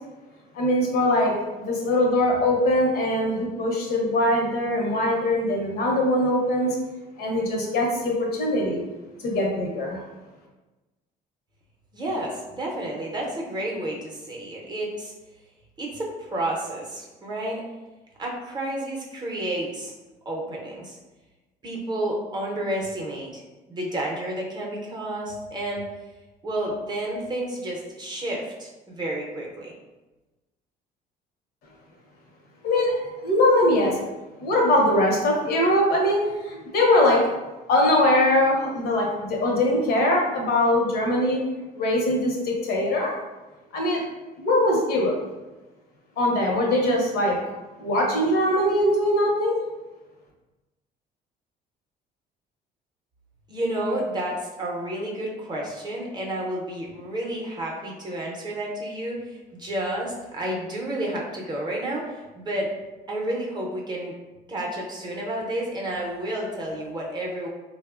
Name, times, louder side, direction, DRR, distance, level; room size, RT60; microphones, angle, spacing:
voice 1, 0.5-6.8 7.2-8.8 9.2-10.0 32.6-34.0 34.4-37.3 37.7-41.4 41.8-43.1 43.7-44.0 44.4-45.2 46.2-47.4 47.8-49.6, left 1 dB, 65° left, -1 dB, 0.7 m, -22 dB
voice 2, 11.9-15.1 15.8-17.6 18.2-19.9 20.3-21.0 21.6-23.4 23.7-25.9 26.4-29.7 53.5-62.7 63.1-64.1 64.5-67.5, right 1 dB, 25° right, -2 dB, 0.6 m, -30 dB
3.0 x 2.0 x 2.3 m, 1.1 s
cardioid pair, 110°, 17 cm